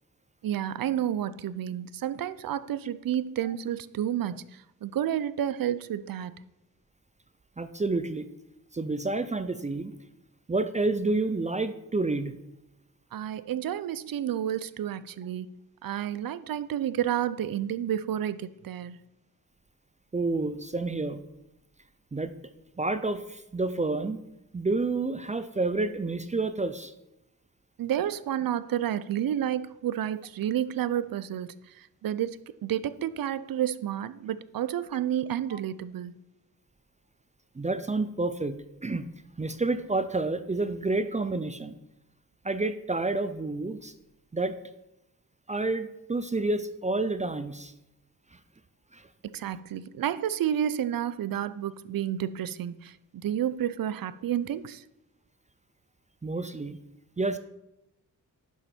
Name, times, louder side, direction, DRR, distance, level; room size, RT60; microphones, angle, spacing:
voice 1, 0.4-6.3 13.1-15.5 15.8-19.0 27.8-36.1 49.2-54.8, right 10 dB, 75° right, 0.6 m, -30 dB
voice 2, 7.6-8.3 8.7-9.9 10.5-12.3 20.1-21.2 22.1-22.3 22.8-24.2 24.5-26.9 35.5-35.6 37.6-38.6 38.8-39.1 39.4-41.8 42.4-43.9 44.3-44.6 45.5-47.7 48.9-49.0 56.2-56.8 57.2-57.4, right 3 dB, 20° right, 0.5 m, -29 dB
10.5 x 7.1 x 4.4 m
wide cardioid pair, 110°, 34 cm